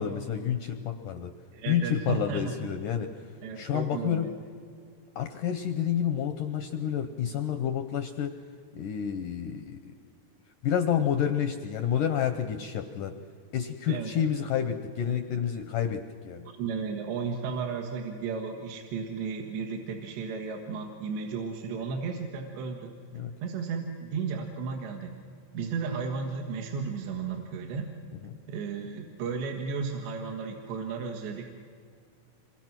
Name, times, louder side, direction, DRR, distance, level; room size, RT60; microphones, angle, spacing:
voice 1, 0.0-1.3 1.7-3.3 3.6-4.3 5.2-8.4 8.7-9.9 10.6-13.1 13.5-16.5 23.1-23.3 28.2-28.4, left 9 dB, 80° left, 7 dB, 1.8 m, -29 dB
voice 2, 1.5-2.6 3.4-4.4 13.9-14.1 16.5-22.9 23.4-25.2 25.5-27.9 28.5-31.5, right 5 dB, 80° right, 2 dB, 3.8 m, -34 dB
27.0 x 23.5 x 6.1 m, 2.2 s
omnidirectional pair, 4.9 m